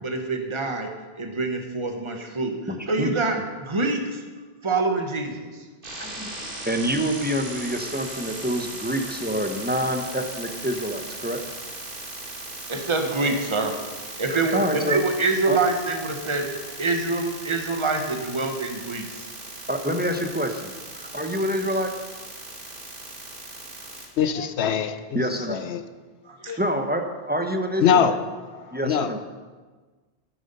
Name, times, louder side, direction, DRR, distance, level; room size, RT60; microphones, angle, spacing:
voice 1, 0.0-0.9 1.2-2.6 2.9-4.2 4.6-5.5 12.7-16.5 16.8-19.3 26.3-26.6, right 3 dB, 30° right, 4 dB, 1.2 m, -26 dB
voice 2, 2.7-3.1 6.0-11.4 14.3-15.0 15.5-15.6 19.7-20.7 21.0-21.9 25.1-25.6 26.6-28.1 28.7-29.2, equal, 10° right, 5 dB, 0.9 m, -27 dB
sound 1, 5.8-24.1, right 2 dB, 55° right, 1.9 m, -38 dB
voice 3, 24.2-25.9 26.5-26.6 27.8-28.2 28.6-29.2, left 8 dB, 85° left, 11 dB, 1.0 m, -23 dB
10.5 x 9.4 x 5.5 m, 1.4 s
omnidirectional pair, 1.1 m